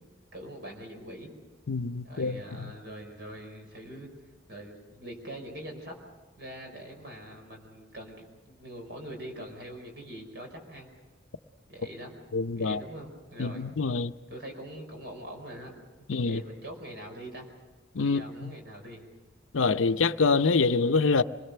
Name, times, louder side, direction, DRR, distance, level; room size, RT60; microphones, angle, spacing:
voice 1, 0.3-1.3 2.0-4.1 4.5-5.9 6.4-8.2 8.5-10.9 11.7-12.1 12.5-13.7 14.3-15.8 16.2-17.5 18.0-19.1, right 1 dB, 55° right, 5.1 m, -43 dB
voice 2, 1.7-2.7 12.3-12.8 13.4-14.1 16.1-16.4 17.9-18.5 19.5-21.2, left 4 dB, 85° left, 0.7 m, -26 dB
26.0 x 20.5 x 6.8 m
head